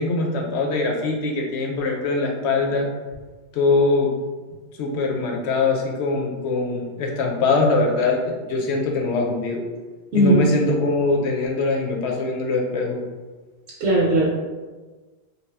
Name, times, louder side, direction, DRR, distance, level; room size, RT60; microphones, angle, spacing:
voice 1, 0.0-2.9 3.5-4.1 4.8-9.6 10.1-13.0, left 3 dB, 80° left, 0 dB, 0.9 m, -22 dB
voice 2, 13.8-14.3, right 1 dB, 75° right, -5 dB, 0.9 m, -17 dB
2.8 x 2.2 x 3.2 m, 1.3 s
omnidirectional pair, 1.1 m